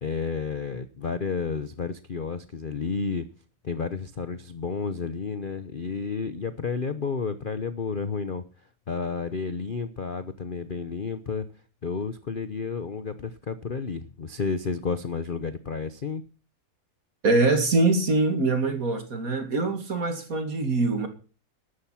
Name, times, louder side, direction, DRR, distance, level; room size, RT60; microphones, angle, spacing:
voice 1, 0.0-3.3 3.6-8.4 8.9-11.5 11.8-16.2, left 5 dB, 40° left, 0.7 m, -31 dB
voice 2, 17.2-21.1, right 3 dB, 45° right, 2.7 m, -23 dB
13.5 x 11.5 x 5.8 m
omnidirectional pair, 2.1 m